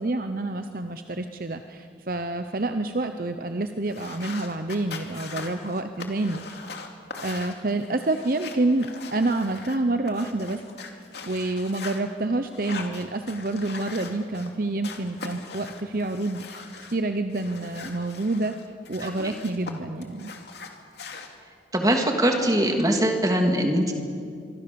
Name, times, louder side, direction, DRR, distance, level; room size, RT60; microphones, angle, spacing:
voice 1, 0.0-6.7 7.2-10.6 11.3-16.6 16.9-18.5 18.9-20.3, right 2 dB, 50° right, 8 dB, 0.8 m, -28 dB
sound 1, 3.8-12.0 12.5-14.5 14.8-16.9 17.3-19.7 20.0-21.3, left 4 dB, 70° left, 2.6 m, -41 dB
voice 2, 21.7-23.9, right 1 dB, 20° right, 3 dB, 2.6 m, -22 dB
25.0 x 24.5 x 7.0 m, 2.5 s
head